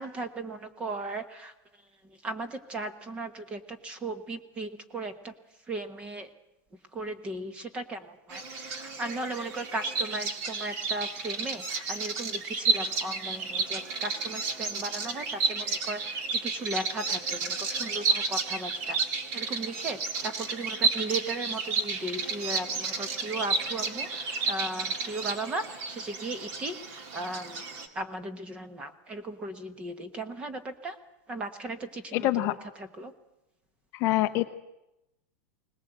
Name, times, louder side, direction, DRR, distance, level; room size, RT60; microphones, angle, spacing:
voice 1, 0.0-1.5 2.0-5.3 5.7-6.3 6.9-19.0 19.3-27.6 27.9-31.0 31.3-33.1, right 2 dB, 15° right, 11 dB, 1.2 m, -37 dB
Bird vocalization bird call bird song, 8.3-27.9, right 4 dB, 35° right, 1.8 m, -32 dB
voice 2, 32.1-32.6 33.9-34.5, left 15 dB, 30° left, 9 dB, 0.7 m, -25 dB
21.0 x 19.5 x 8.0 m, 0.91 s
supercardioid pair, 180°, 9 cm